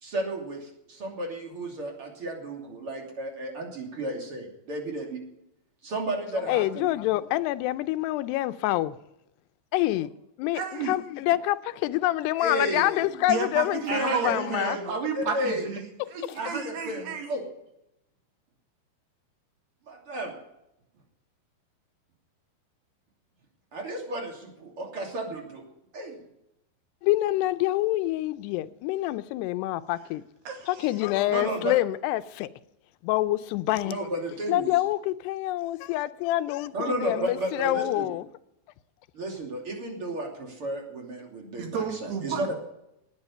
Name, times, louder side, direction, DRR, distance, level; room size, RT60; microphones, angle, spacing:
voice 1, 0.0-5.2 5.8-6.9 12.4-13.2 13.9-15.6 16.4-17.4 19.9-20.4 23.7-25.6 25.9-26.2 31.3-31.8 33.8-34.7 36.7-38.1 39.1-42.5, right 1 dB, 35° right, 3.3 m, -33 dB
voice 2, 6.5-9.0 9.7-10.1 10.4-14.8 27.0-30.2 30.7-32.5 33.0-34.1 34.5-38.3, left 16 dB, 85° left, 2.7 m, -26 dB
voice 3, 10.5-10.9 13.3-17.3 30.5-31.0 41.6-42.5, right 6 dB, 75° right, 4.2 m, -32 dB
19.0 x 10.5 x 5.5 m
omnidirectional pair, 4.7 m